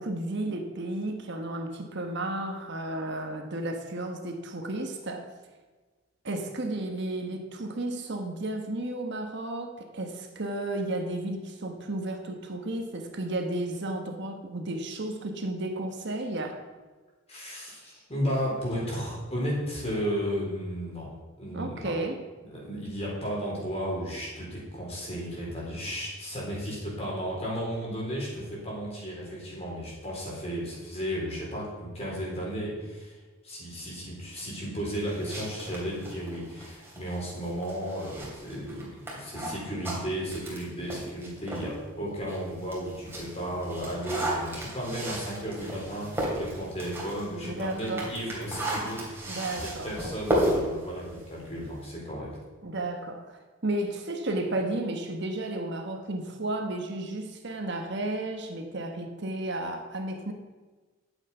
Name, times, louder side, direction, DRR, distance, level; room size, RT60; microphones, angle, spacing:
voice 1, 0.0-5.3 6.2-16.6 21.5-22.2 47.4-48.1 49.3-49.9 52.6-60.3, right 2 dB, 55° right, 4 dB, 1.2 m, -33 dB
voice 2, 17.3-21.1 21.4-21.9 22.4-33.2 33.4-52.3, equal, 30° left, -4 dB, 4.0 m, -34 dB
sound 1, 35.0-41.7 42.2-51.9, right 1 dB, 10° right, 3.1 m, -35 dB
11.5 x 8.2 x 5.6 m, 1.3 s
head